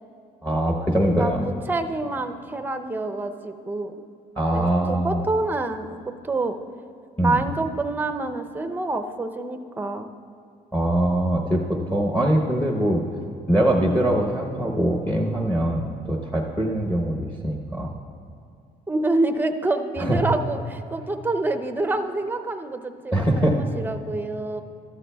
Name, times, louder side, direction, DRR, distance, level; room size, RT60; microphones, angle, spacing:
voice 1, 0.4-1.4 4.4-5.2 7.2-7.4 10.7-13.0 13.5-17.9 20.0-20.2 23.1-23.7, right 1 dB, 10° left, 0 dB, 0.9 m, -22 dB
voice 2, 1.2-4.0 4.5-5.9 6.2-6.5 7.2-10.1 18.9-24.6, right 2 dB, 10° right, 8 dB, 0.5 m, -27 dB
13.5 x 12.5 x 2.3 m, 2.4 s
cardioid pair, 110°, 17 cm